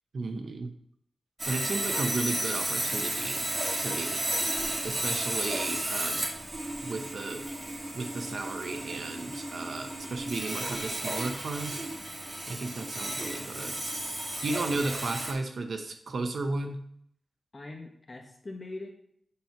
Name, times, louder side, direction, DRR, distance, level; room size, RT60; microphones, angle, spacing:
voice 1, 0.1-0.7 1.5-3.4 3.8-4.2 4.8-6.3 6.8-7.4 7.9-11.9 12.5-13.8 14.4-16.8, right 3 dB, 60° right, 5 dB, 0.8 m, -34 dB
Sawing, 1.4-15.3, right 1 dB, 30° right, 2.0 m, -33 dB
voice 2, 12.5-12.9 17.5-18.9, left 2 dB, 30° left, 2 dB, 1.1 m, -43 dB
8.6 x 4.5 x 5.8 m, 0.68 s
wide cardioid pair, 145°, 0 cm